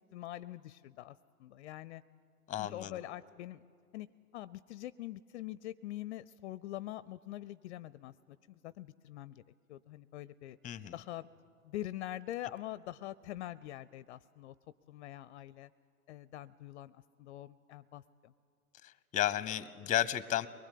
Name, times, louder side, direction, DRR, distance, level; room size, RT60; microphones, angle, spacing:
voice 1, 0.1-2.0 2.6-3.6 3.9-9.4 9.7-10.6 10.9-11.3 11.6-14.5 14.9-15.7 16.1-18.3, left 14 dB, 50° left, 18 dB, 0.5 m, -44 dB
voice 2, 2.5-2.9 10.6-10.9 19.1-20.5, left 12 dB, 15° left, 18 dB, 0.8 m, -32 dB
23.0 x 20.5 x 8.4 m, 2.3 s
figure-of-eight pair, 95°, 45 cm